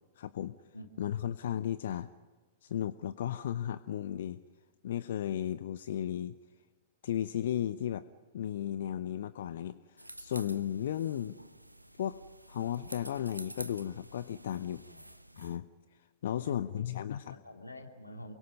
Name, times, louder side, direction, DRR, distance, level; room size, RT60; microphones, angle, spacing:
voice 1, 0.2-0.5 1.0-2.1 2.6-4.4 4.8-6.4 7.0-8.1 8.3-11.4 12.0-12.2 12.5-14.8 15.4-15.7 16.2-17.4, left 10 dB, 55° left, 15 dB, 0.7 m, -35 dB
sound 1, 10.0-15.6, right 1 dB, 90° right, 1.0 m, -49 dB
voice 2, 16.3-18.3, left 1 dB, 85° left, 4 dB, 2.8 m, -48 dB
28.5 x 23.0 x 5.5 m, 1.4 s
figure-of-eight pair, 100°, 0 cm